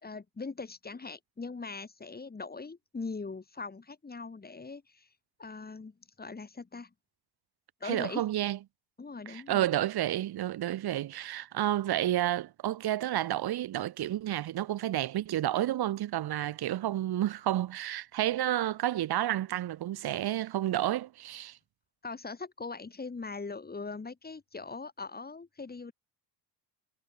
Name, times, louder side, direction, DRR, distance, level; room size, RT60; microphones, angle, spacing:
voice 1, 0.0-5.1 5.4-6.9 7.8-8.2 9.0-9.7 22.0-25.9, left 4 dB, 20° left, 2.5 m, -41 dB
voice 2, 7.8-8.6 9.3-21.6, right 13 dB, 55° right, 1.7 m, -30 dB
supercardioid pair, 80°, 45 cm